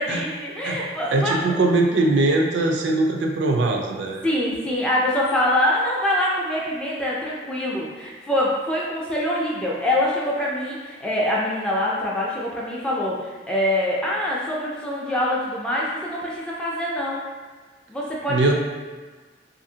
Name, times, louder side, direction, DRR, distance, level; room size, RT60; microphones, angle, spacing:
voice 1, 0.0-1.6 4.2-17.2 17.9-18.5, left 1 dB, 5° left, -5 dB, 0.3 m, -24 dB
voice 2, 1.1-4.3 18.3-18.5, right 2 dB, 85° right, 2 dB, 0.4 m, -21 dB
2.7 x 2.5 x 2.7 m, 1.4 s
head